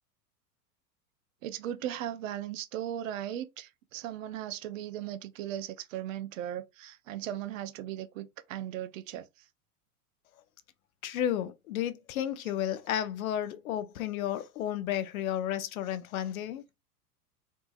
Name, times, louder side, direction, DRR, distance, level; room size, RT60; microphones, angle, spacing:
voice 1, 1.4-9.2, right 11 dB, 55° right, 0.5 m, -37 dB
voice 2, 11.0-16.6, left 11 dB, 65° left, 0.6 m, -32 dB
2.7 x 2.6 x 2.3 m
hypercardioid pair, 95°, 46 cm